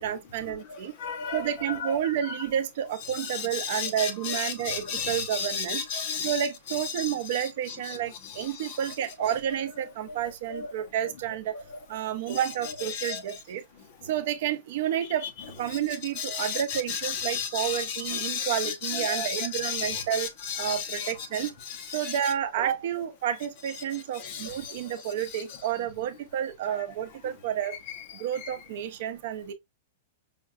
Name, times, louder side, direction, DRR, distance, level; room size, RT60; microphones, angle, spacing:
voice 1, 0.0-0.9 1.3-5.8 6.2-11.5 11.9-13.6 14.0-15.2 15.6-20.3 20.6-21.5 21.9-27.8 28.1-29.5, right 10 dB, 45° right, 0.5 m, -30 dB
voice 2, 1.0-1.5 1.8-2.0 3.1-6.5 7.0-8.0 8.6-8.8 9.3-9.4 10.5-10.7 12.9-13.2 16.2-22.1 24.2-24.7 25.3-25.4 26.7-26.8 28.4-28.6, left 6 dB, 35° left, 0.7 m, -33 dB
5.6 x 2.3 x 2.3 m
supercardioid pair, 180°, 0 cm